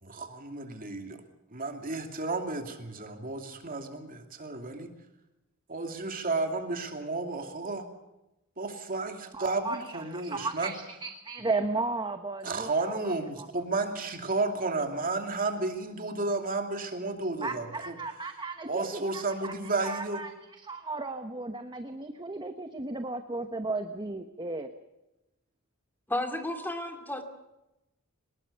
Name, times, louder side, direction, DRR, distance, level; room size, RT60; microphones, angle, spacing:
voice 1, 0.0-1.2 1.5-4.9 5.7-7.9 8.6-10.7 12.4-17.9 18.7-20.2, right 3 dB, 45° right, 4 dB, 2.7 m, -32 dB
voice 2, 9.3-13.5 17.4-19.5 19.8-24.7, right 3 dB, 20° right, 7 dB, 1.1 m, -35 dB
voice 3, 26.1-27.2, left 1 dB, 10° left, 5 dB, 2.5 m, -32 dB
24.0 x 20.0 x 6.9 m, 0.95 s
head